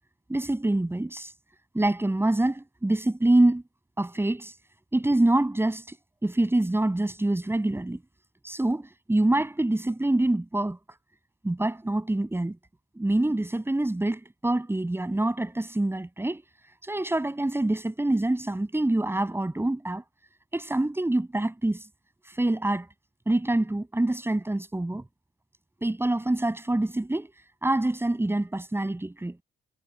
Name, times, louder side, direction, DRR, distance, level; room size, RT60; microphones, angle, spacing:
voice 1, 0.3-1.3 1.7-3.6 4.0-4.5 4.9-6.0 6.2-8.0 8.4-10.8 11.4-12.6 13.0-16.4 16.8-20.0 20.5-21.8 22.3-22.9 23.3-25.0 25.8-27.3 27.6-29.4, right 1 dB, 10° right, 7.4 m, -25 dB
cardioid pair, 90°, 20 cm